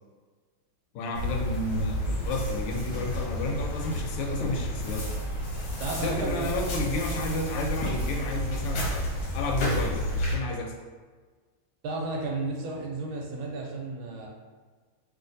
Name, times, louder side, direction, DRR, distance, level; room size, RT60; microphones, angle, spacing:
voice 1, 0.9-5.1 6.0-9.1 9.3-10.7, left 2 dB, 90° left, 1 dB, 1.5 m, -31 dB
sound 1, 1.1-10.3, equal, 65° left, 1.1 m, -31 dB
voice 2, 5.8-6.5 11.8-14.3, right 3 dB, 75° right, -1 dB, 1.3 m, -33 dB
3.2 x 2.6 x 2.6 m, 1.4 s
omnidirectional pair, 2.4 m